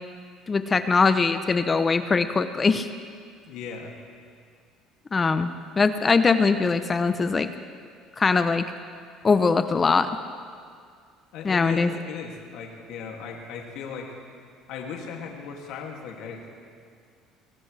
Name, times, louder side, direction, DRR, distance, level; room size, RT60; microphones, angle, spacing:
voice 1, 0.5-2.9 5.1-5.5 5.8-7.5 8.2-8.6 9.2-10.1 11.4-11.9, left 4 dB, 25° left, 10 dB, 0.6 m, -21 dB
voice 2, 3.5-3.9 11.3-14.1 14.7-16.5, left 6 dB, 70° left, 0 dB, 2.3 m, -37 dB
23.5 x 17.5 x 3.3 m, 2.1 s
cardioid pair, 125°, 0 cm